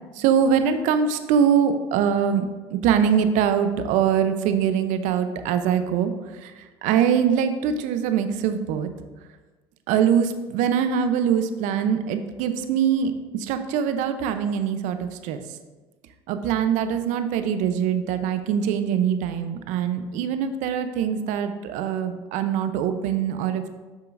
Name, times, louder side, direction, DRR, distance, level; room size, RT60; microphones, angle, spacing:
voice 1, 0.1-2.5 2.7-8.9 9.9-15.6 16.3-23.7, right 8 dB, 65° right, 9 dB, 0.8 m, -23 dB
10.5 x 6.7 x 2.6 m, 1.2 s
hypercardioid pair, 75°, 14 cm